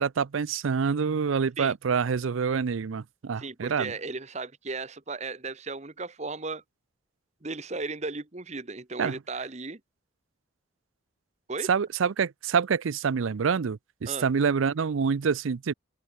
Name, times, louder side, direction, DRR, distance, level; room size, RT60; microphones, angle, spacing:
voice 1, 0.0-3.9 9.0-9.1 11.7-15.7, right 6 dB, 80° right, 0.5 m, -26 dB
voice 2, 3.4-6.6 7.4-9.8 11.5-11.7 14.1-14.3, right 3 dB, 35° right, 1.1 m, -35 dB
open air
head